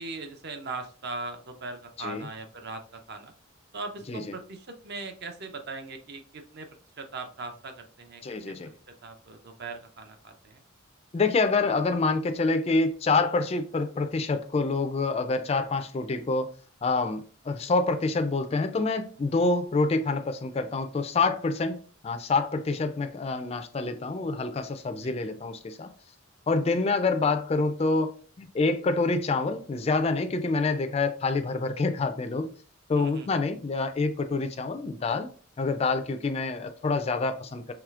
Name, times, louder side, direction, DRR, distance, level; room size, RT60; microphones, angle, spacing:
voice 1, 0.0-3.3 3.7-6.7 7.0-8.5 8.9-10.6 24.9-25.1 33.0-33.4, right 3 dB, 50° right, 0.6 m, -40 dB
voice 2, 8.2-8.7 11.1-16.5 16.8-25.9 26.5-32.5 32.9-35.3 35.6-37.7, left 3 dB, 30° left, 0.3 m, -27 dB
4.8 x 3.2 x 2.4 m
head